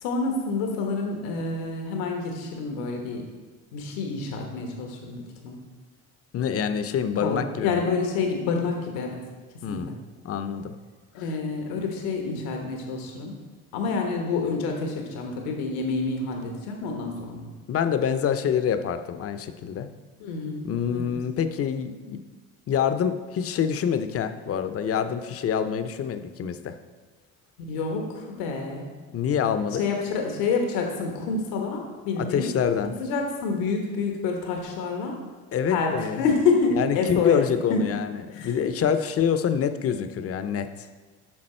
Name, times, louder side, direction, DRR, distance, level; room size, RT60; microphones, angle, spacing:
voice 1, 0.0-3.2 3.7-5.6 7.2-9.2 9.7-9.8 11.1-13.3 13.7-17.5 20.2-21.1 27.6-28.9 29.8-32.5 32.9-35.2 35.7-37.4 37.7-37.8 38.3-38.5, left 4 dB, 90° left, 2 dB, 1.3 m, -28 dB
voice 2, 6.3-7.8 9.6-10.0 10.2-10.8 17.7-19.9 20.6-22.2 22.7-26.8 29.1-29.8 32.2-32.9 35.5-36.2 36.8-40.9, left 8 dB, 40° left, 10 dB, 0.6 m, -26 dB
8.7 x 5.9 x 4.3 m, 1.4 s
supercardioid pair, 95°, 35 cm